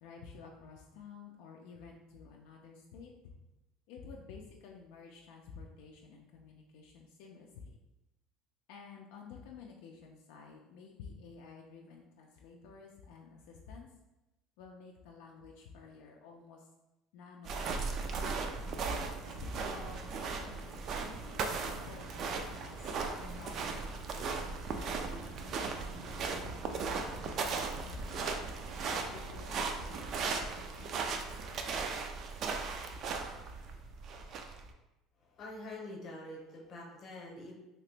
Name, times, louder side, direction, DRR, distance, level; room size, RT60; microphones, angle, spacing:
voice 1, 0.0-3.3 3.9-7.8 8.7-13.9 14.6-16.7 17.1-18.1 19.4-24.3 24.7-25.3 25.9-28.3 28.9-31.7, left 5 dB, 80° left, 0 dB, 0.4 m, -52 dB
sound 1, 17.5-34.7, right 4 dB, 40° right, 0.3 m, -37 dB
sound 2, 17.6-33.8, right 2 dB, 60° right, 0.8 m, -52 dB
voice 2, 35.2-37.5, left 1 dB, 40° left, -1 dB, 0.8 m, -46 dB
2.9 x 2.9 x 3.3 m, 0.97 s
cardioid pair, 150°, 0 cm